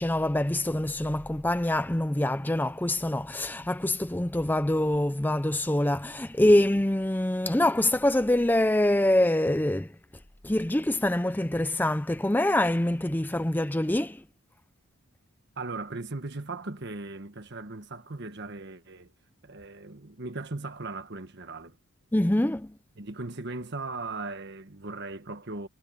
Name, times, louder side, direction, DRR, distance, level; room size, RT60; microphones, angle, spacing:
voice 1, 0.0-9.9 10.4-14.2 22.1-22.7, left 1 dB, 10° left, 0.5 m, -25 dB
voice 2, 15.6-19.1 19.4-21.8 23.0-25.7, right 3 dB, 50° right, 1.4 m, -38 dB
head